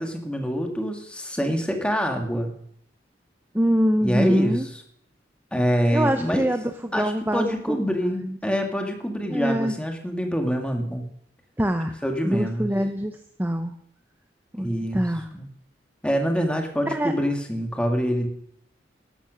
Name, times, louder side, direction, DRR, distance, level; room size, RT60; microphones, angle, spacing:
voice 1, 0.0-2.5 4.0-4.8 5.5-6.5 6.9-11.1 12.0-12.7 14.6-15.0 15.3-15.5 16.0-18.3, equal, 5° left, 3 dB, 1.8 m, -25 dB
voice 2, 3.5-4.7 5.9-7.8 8.1-8.4 9.3-9.7 11.6-11.9 12.3-13.7 14.5-15.2 16.9-17.1, equal, 10° right, 7 dB, 0.7 m, -24 dB
13.0 x 11.5 x 6.2 m, 0.68 s
head